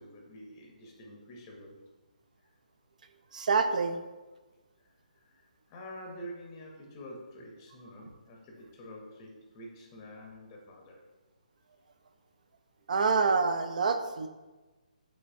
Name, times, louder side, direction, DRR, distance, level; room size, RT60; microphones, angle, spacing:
voice 1, 0.0-1.8 5.1-11.0, equal, 20° left, -1 dB, 0.6 m, -47 dB
voice 2, 3.3-4.0 12.9-14.3, right 4 dB, 60° right, 8 dB, 0.4 m, -26 dB
5.5 x 3.3 x 2.6 m, 1.2 s
hypercardioid pair, 160°, 5 cm